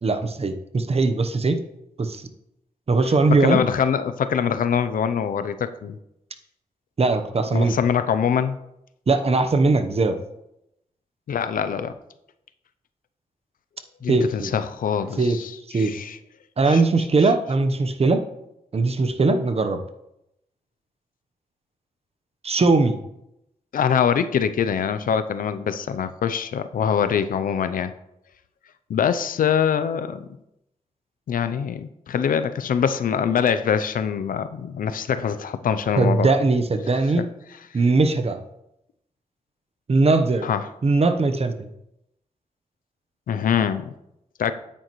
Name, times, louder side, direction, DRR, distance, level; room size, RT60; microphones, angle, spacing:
voice 1, 0.0-1.6 2.0-2.2 2.9-3.6 7.0-7.8 9.1-10.2 14.1-14.5 15.2-15.4 15.7-15.9 16.6-18.2 18.7-19.8 22.4-23.0 36.0-37.3 37.7-38.4 39.9-40.5 40.8-41.7, right 3 dB, 45° right, 7 dB, 0.9 m, -20 dB
voice 2, 3.3-6.0 7.5-8.6 11.3-11.9 14.0-16.2 16.7-16.8 23.7-27.9 28.9-30.3 31.3-36.3 37.2-37.3 40.4-40.6 43.3-43.9 44.4-44.5, left 7 dB, 85° left, 11 dB, 0.5 m, -24 dB
9.0 x 8.9 x 3.1 m, 0.84 s
cardioid pair, 65°, 14 cm